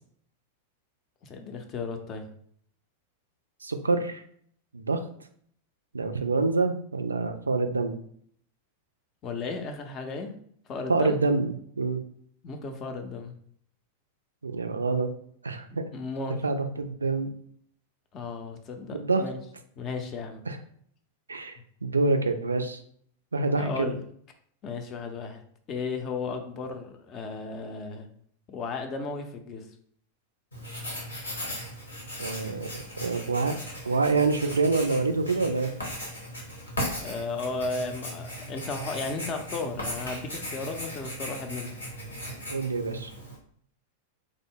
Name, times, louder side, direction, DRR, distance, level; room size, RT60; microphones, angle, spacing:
voice 1, 1.2-2.3 9.2-10.3 10.7-11.2 12.4-13.3 15.9-16.4 18.1-19.4 19.8-20.4 23.5-24.0 24.6-25.4 25.7-28.1 28.5-29.7 37.0-41.7, left 4 dB, 30° left, 5 dB, 0.5 m, -34 dB
voice 2, 3.6-4.2 4.7-5.0 5.9-8.0 10.9-12.0 14.4-15.1 15.4-15.9 16.4-17.3 18.9-19.2 20.5-20.6 21.3-22.8 23.3-23.9 32.2-33.6 33.9-35.7 42.5-43.1, right 3 dB, 75° right, 7 dB, 0.3 m, -26 dB
Writing, 30.5-43.4, equal, 80° left, 1.0 m, -37 dB
3.3 x 2.0 x 3.7 m, 0.64 s
figure-of-eight pair, 90°, 0 cm